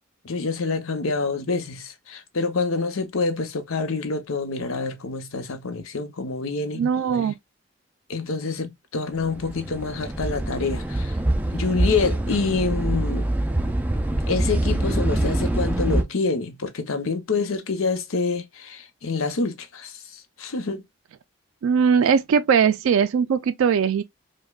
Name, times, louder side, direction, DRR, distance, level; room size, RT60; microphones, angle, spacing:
voice 1, 0.2-6.8 8.1-11.2 11.5-13.3 14.3-20.8, left 4 dB, 90° left, 0.8 m, -27 dB
voice 2, 6.7-7.3 21.6-24.0, right 7 dB, 85° right, 0.3 m, -20 dB
sound 1, 9.2-16.0, right 1 dB, 10° right, 0.3 m, -25 dB
5.0 x 2.2 x 2.3 m
head